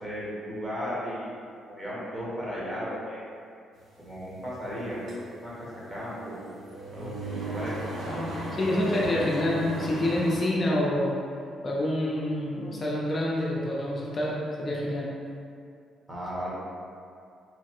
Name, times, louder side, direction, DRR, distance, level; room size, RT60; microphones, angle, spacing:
voice 1, 0.0-1.3 1.7-3.2 4.0-5.0 5.4-6.4 6.9-7.8 16.1-16.5, equal, 20° right, -7 dB, 1.0 m, -35 dB
sound 1, 3.8-10.4, right 1 dB, 75° right, 0.7 m, -36 dB
voice 2, 8.0-11.1 11.6-15.1, left 1 dB, 40° left, -4 dB, 0.4 m, -27 dB
3.1 x 2.2 x 2.8 m, 2.4 s
cardioid pair, 90°, 0 cm